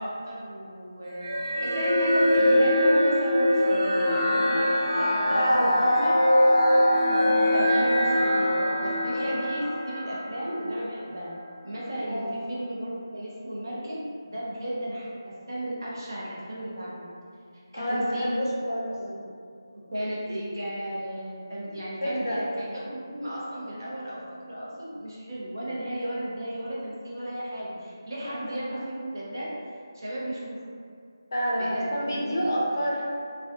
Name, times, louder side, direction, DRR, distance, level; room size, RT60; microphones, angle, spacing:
voice 1, 0.0-4.7 4.9-6.2 7.4-11.3 11.6-17.1 17.7-18.4 18.8-19.2 19.7-29.5 29.9-30.6 31.5-32.4, equal, 55° right, -6 dB, 0.7 m, -34 dB
sound 1, 1.2-10.7, equal, 90° right, 1.2 m, -22 dB
voice 2, 5.3-5.8 12.1-12.3 17.7-18.9 22.0-22.4 28.2-28.4 28.7-28.8 31.3-33.0, equal, 50° left, -3 dB, 0.5 m, -28 dB
2.4 x 2.2 x 2.5 m, 2.3 s
figure-of-eight pair, 175°, 2 cm